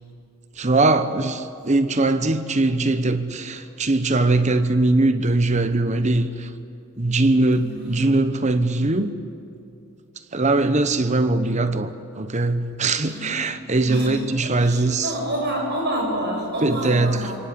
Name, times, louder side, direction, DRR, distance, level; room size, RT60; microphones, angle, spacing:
voice 1, 0.6-6.5 7.0-9.1 10.3-15.1 16.6-17.3, right 2 dB, 35° right, 1.0 m, -21 dB
voice 2, 7.6-8.0 13.0-13.4 13.9-17.3, right 1 dB, 50° right, 7.2 m, -28 dB
27.5 x 24.0 x 8.6 m
head